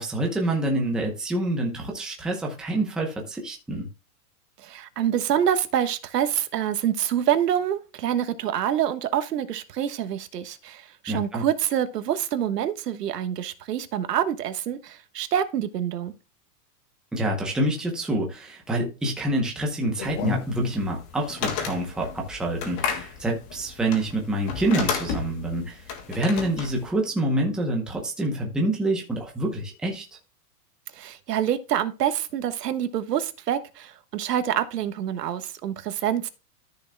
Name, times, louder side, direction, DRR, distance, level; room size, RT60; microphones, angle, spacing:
voice 1, 0.0-3.9 11.1-11.4 17.1-30.0, right 1 dB, ahead, 0.7 m, -27 dB
voice 2, 4.6-16.1 30.9-36.3, right 10 dB, 90° right, 1.4 m, -26 dB
sound 1, 20.0-26.9, left 7 dB, 30° left, 1.7 m, -32 dB
13.5 x 6.5 x 2.2 m
supercardioid pair, 170°, 46 cm